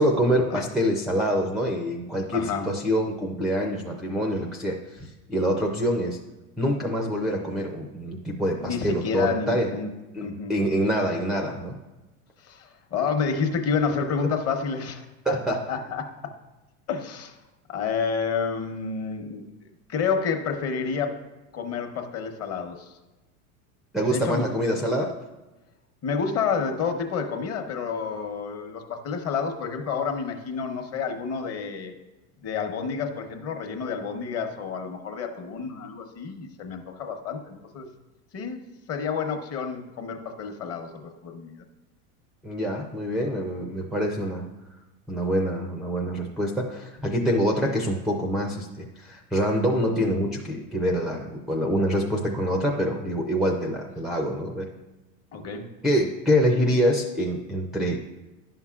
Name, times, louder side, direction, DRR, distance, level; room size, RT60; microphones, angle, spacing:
voice 1, 0.0-6.2 6.6-9.7 10.1-11.8 15.3-15.6 23.9-25.1 42.4-44.4 45.1-54.7 55.8-58.0, equal, ahead, 2 dB, 0.4 m, -25 dB
voice 2, 2.3-2.7 8.6-9.9 10.2-10.6 12.4-16.1 16.9-17.3 17.7-19.4 19.9-21.2 21.5-23.0 24.1-24.5 26.0-31.9 32.4-37.9 38.3-38.6 38.9-41.6 55.3-55.7, left 5 dB, 35° left, 5 dB, 0.9 m, -29 dB
10.5 x 5.7 x 2.4 m, 1.1 s
supercardioid pair, 115°, 42 cm